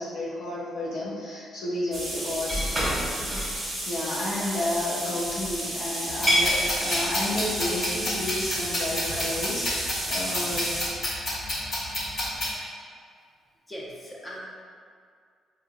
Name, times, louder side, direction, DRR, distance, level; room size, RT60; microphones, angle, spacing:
voice 1, 0.0-3.2 3.9-10.7, left 1 dB, 80° left, -7 dB, 0.8 m, -31 dB
sound 1, 1.9-10.9, right 1 dB, 20° right, 1.3 m, -30 dB
sound 2, 6.1-12.5, left 1 dB, 50° left, 1.4 m, -30 dB
voice 2, 13.7-14.4, equal, 15° left, -4 dB, 0.7 m, -39 dB
4.7 x 2.3 x 2.2 m, 2.1 s
cardioid pair, 90°, 0 cm